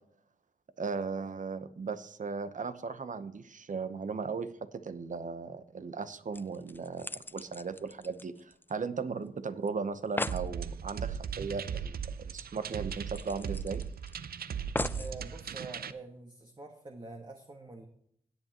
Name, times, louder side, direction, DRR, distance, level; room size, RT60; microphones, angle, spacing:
voice 1, 0.8-13.8, right 5 dB, 55° right, 12 dB, 0.9 m, -37 dB
sound 1, 6.0-6.1 6.3-9.0 9.3-9.4 9.7-9.8 10.0-10.5 12.0-12.1 12.4-12.5 13.1-14.1 14.7-15.2 15.9-16.0, left 2 dB, 15° left, 0.3 m, -38 dB
sound 2, 10.3-15.9, right 7 dB, 75° right, 0.6 m, -38 dB
voice 2, 14.9-17.9, right 3 dB, 30° right, 2 dB, 1.4 m, -46 dB
17.0 x 8.2 x 3.0 m, 0.68 s
cardioid pair, 60°, 16 cm